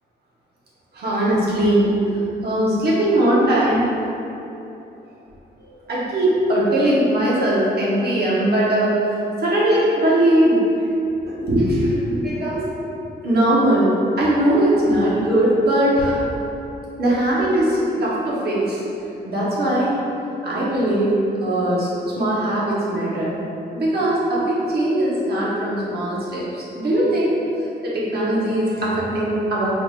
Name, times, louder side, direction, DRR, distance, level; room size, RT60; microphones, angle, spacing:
voice 1, 0.9-3.8 5.6-8.9 9.4-10.6 11.2-12.7 13.0-13.9 14.2-16.2 17.0-18.8 19.2-19.9 20.4-21.9 22.2-23.3 23.7-27.3 27.8-29.7, right 1 dB, 60° right, -7 dB, 1.1 m, -20 dB
4.8 x 3.5 x 2.5 m, 2.9 s
wide cardioid pair, 140°, 18 cm